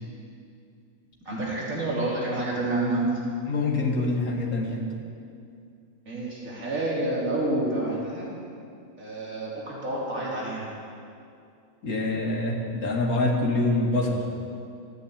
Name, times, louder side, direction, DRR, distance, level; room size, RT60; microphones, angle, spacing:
voice 1, 1.3-3.2 6.1-8.3 9.0-10.7, right 2 dB, 65° right, -5 dB, 3.7 m, -28 dB
voice 2, 3.5-4.9 11.8-14.2, left 2 dB, 85° left, 0 dB, 2.2 m, -25 dB
13.5 x 9.6 x 8.5 m, 2.4 s
omnidirectional pair, 1.5 m